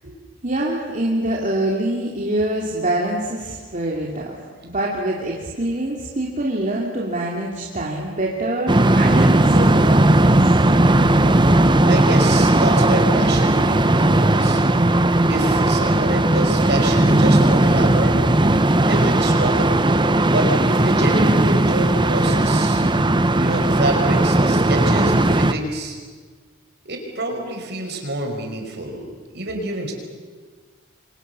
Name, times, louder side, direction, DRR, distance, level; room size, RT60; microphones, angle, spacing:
voice 1, 0.4-4.3 4.6-10.9, right 1 dB, 35° right, -2 dB, 3.0 m, -25 dB
sound 1, 8.7-25.5, right 1 dB, 20° right, 0.9 m, -16 dB
voice 2, 11.8-14.9 15.3-18.2 18.9-19.8 20.3-22.8 23.3-26.0 26.9-29.9, right 1 dB, 55° right, 3 dB, 5.4 m, -27 dB
28.5 x 25.0 x 7.0 m, 1.5 s
head